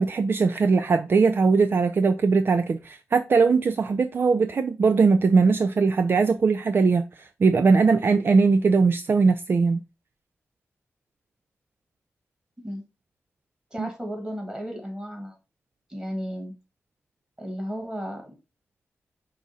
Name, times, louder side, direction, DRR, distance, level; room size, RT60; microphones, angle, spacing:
voice 1, 0.0-9.8 13.8-13.9, right 4 dB, 50° right, 0.3 m, -20 dB
voice 2, 13.7-15.4 15.9-16.5 17.4-18.3, equal, 15° right, 1.8 m, -34 dB
5.2 x 2.4 x 4.0 m
wide cardioid pair, 80°, 5 cm